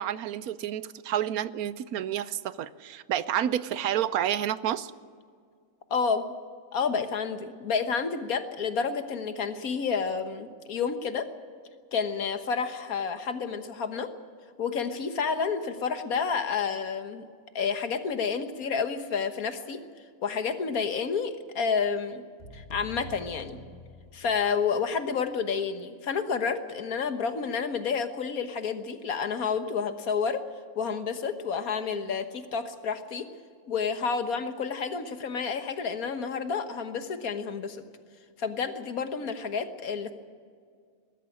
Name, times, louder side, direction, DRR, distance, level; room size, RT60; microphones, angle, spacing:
voice 1, 0.0-4.9, right 10 dB, 85° right, 16 dB, 1.2 m, -29 dB
voice 2, 5.9-6.2 6.7-11.3 11.9-14.1 14.6-17.2 17.6-19.8 20.2-22.2 22.5-23.6 24.1-30.4 30.8-33.3 33.7-37.8 38.4-40.1, left 5 dB, 80° left, 9 dB, 1.8 m, -30 dB
sound 1, 22.4-24.6, equal, 45° left, 2.7 m, -46 dB
20.5 x 13.0 x 9.9 m, 2.1 s
omnidirectional pair, 1.5 m